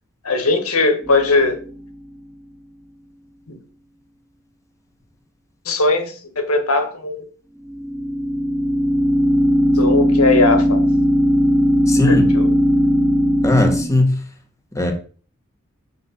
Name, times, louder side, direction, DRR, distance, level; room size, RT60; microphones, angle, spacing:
voice 1, 0.2-1.6 3.5-3.6 5.7-7.2 9.8-10.8 12.0-12.5, left 3 dB, 85° left, 1.8 m, -19 dB
sound 1, 1.1-1.6 7.7-13.8, equal, ahead, 1.9 m, -17 dB
voice 2, 11.9-12.3 13.4-14.2 14.8-14.9, left 2 dB, 15° left, 1.9 m, -17 dB
6.4 x 6.4 x 7.4 m
head